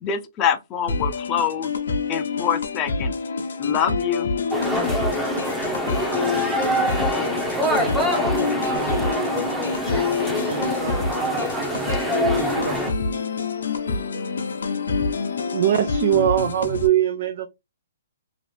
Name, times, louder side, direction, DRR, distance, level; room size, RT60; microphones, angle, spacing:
voice 1, 0.0-1.7 2.1-3.1 3.6-4.3, left 8 dB, 25° left, 0.5 m, -25 dB
sound 1, 0.9-16.9, left 4 dB, 80° left, 0.8 m, -27 dB
sound 2, 4.5-12.9, equal, 5° right, 0.7 m, -25 dB
voice 2, 7.7-12.9, right 5 dB, 70° right, 1.1 m, -36 dB
voice 3, 15.5-17.5, right 12 dB, 50° right, 0.4 m, -20 dB
2.9 x 2.5 x 3.2 m
hypercardioid pair, 155°, 0 cm